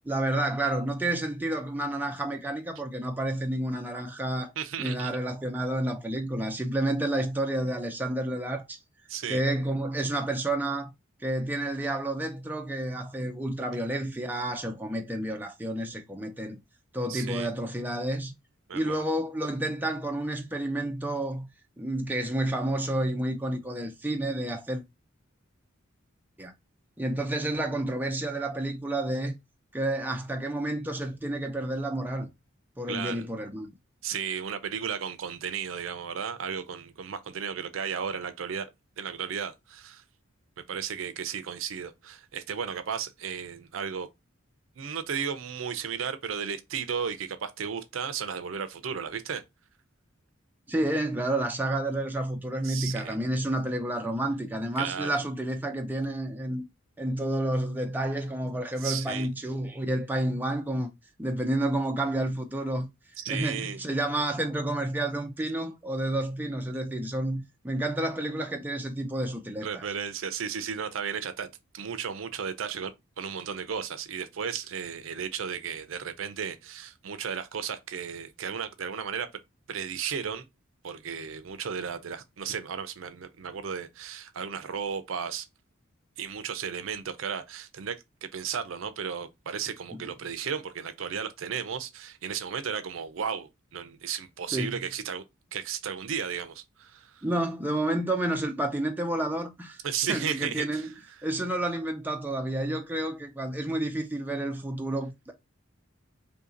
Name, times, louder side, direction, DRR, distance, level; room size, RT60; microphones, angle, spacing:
voice 1, 0.1-4.5 4.8-8.8 9.3-10.9 11.2-16.6 16.9-18.3 18.7-21.5 21.8-24.8 26.4-26.5 27.0-29.3 29.7-32.3 32.8-33.7 50.7-56.6 57.0-60.9 61.2-62.9 63.3-69.8 89.9-90.0 94.5-94.8 97.2-99.8 100.1-100.9 101.2-105.3, right 1 dB, 10° right, 0.4 m, -30 dB
voice 2, 4.6-5.1 9.1-9.4 17.1-17.5 18.7-19.0 32.9-33.2 34.0-38.7 39.0-40.0 40.7-44.1 44.8-49.4 52.6-53.2 54.8-55.1 58.8-59.3 63.2-63.8 69.6-79.3 79.7-80.4 80.8-85.5 86.2-95.2 95.5-97.2 99.8-100.9, right 7 dB, 70° right, 0.5 m, -34 dB
2.8 x 2.7 x 3.8 m
head